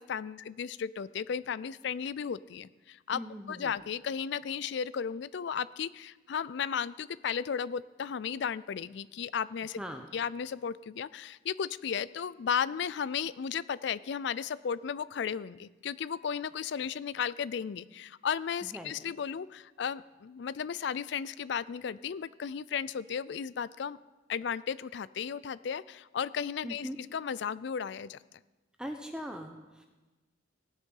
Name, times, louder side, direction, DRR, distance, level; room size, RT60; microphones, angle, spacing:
voice 1, 0.0-3.2 3.5-9.8 10.1-24.0 24.3-28.2, left 7 dB, 60° left, 18 dB, 0.3 m, -34 dB
voice 2, 3.1-3.7 9.8-10.1 18.6-18.9 26.6-27.0 28.8-29.9, equal, 5° right, 4 dB, 0.6 m, -40 dB
18.0 x 6.5 x 5.4 m, 1.2 s
head